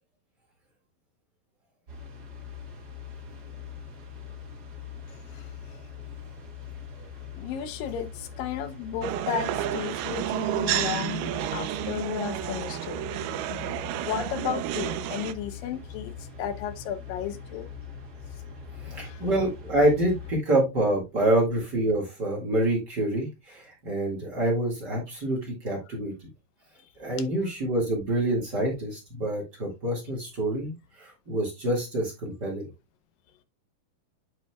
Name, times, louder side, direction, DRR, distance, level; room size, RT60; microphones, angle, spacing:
sound 1, 1.9-20.3, left 6 dB, 50° right, 1.1 m, -42 dB
voice 1, 5.1-5.8 7.0-7.1 7.4-13.7 14.0-17.7 18.9-19.3, left 9 dB, 85° left, 2.5 m, -34 dB
sound 2, 9.0-15.3, right 13 dB, 80° right, 2.1 m, -31 dB
voice 2, 18.8-26.1 27.0-32.7, right 1 dB, 35° right, 2.2 m, -27 dB
9.2 x 5.7 x 2.3 m
omnidirectional pair, 3.9 m